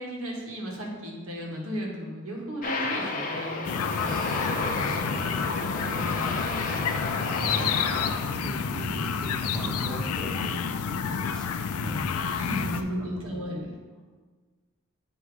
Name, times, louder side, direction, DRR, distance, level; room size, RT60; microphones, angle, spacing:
voice 1, 0.0-4.2 12.3-13.7, equal, 80° right, -2 dB, 1.4 m, -35 dB
Aircraft, 2.6-8.1, left 2 dB, 40° left, 0.6 m, -32 dB
sound 1, 3.6-12.8, left 6 dB, 90° left, 0.4 m, -29 dB
voice 2, 3.9-5.4 5.8-7.7 8.2-12.3 12.6-13.1, right 1 dB, 5° left, -6 dB, 1.2 m, -38 dB
8.7 x 3.0 x 4.7 m, 1.4 s
head